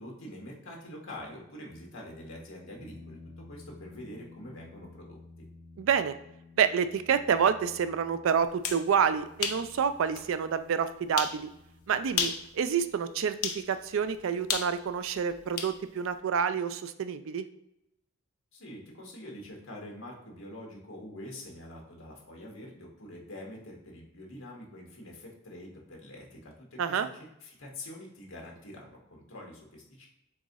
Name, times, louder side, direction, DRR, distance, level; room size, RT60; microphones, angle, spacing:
voice 1, 0.0-5.4 18.5-27.1 27.4-30.1, left 1 dB, 70° left, -1 dB, 1.4 m, -45 dB
sound 1, 2.7-15.8, left 3 dB, 20° left, 1.0 m, -54 dB
voice 2, 5.8-6.1 6.6-11.5 11.9-17.4 26.8-27.1, right 7 dB, 65° right, 11 dB, 0.3 m, -28 dB
sound 2, 8.4-8.8 9.4-9.6 10.2-10.3 11.2-11.4 12.1-12.5 13.4-13.6 14.5-15.8, left 7 dB, 90° left, 0.6 m, -31 dB
3.6 x 3.0 x 4.0 m, 0.84 s
head